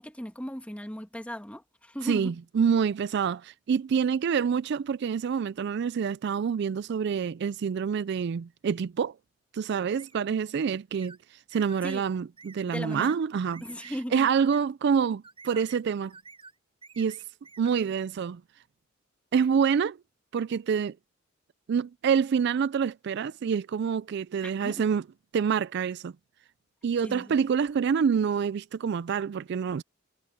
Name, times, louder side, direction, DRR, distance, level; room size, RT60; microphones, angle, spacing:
voice 1, 0.0-2.3 11.8-12.0 12.7-13.2 13.6-14.3 24.4-24.8 27.0-27.4, equal, 5° left, 1.7 m, -37 dB
voice 2, 2.0-9.1 9.5-11.2 11.5-13.6 14.1-16.1 17.0-17.2 17.6-18.4 19.3-20.0 20.3-20.9 21.7-25.0 25.3-26.1 26.8-29.8, right 6 dB, 55° right, 0.3 m, -27 dB
sound 1, 10.0-10.2 11.0-11.2 11.5-12.0 12.4-12.6 12.9-13.2 13.5-13.9 14.3-14.7 15.2-15.8 16.1-16.5 16.8-17.8, right 4 dB, 25° right, 5.5 m, -50 dB
head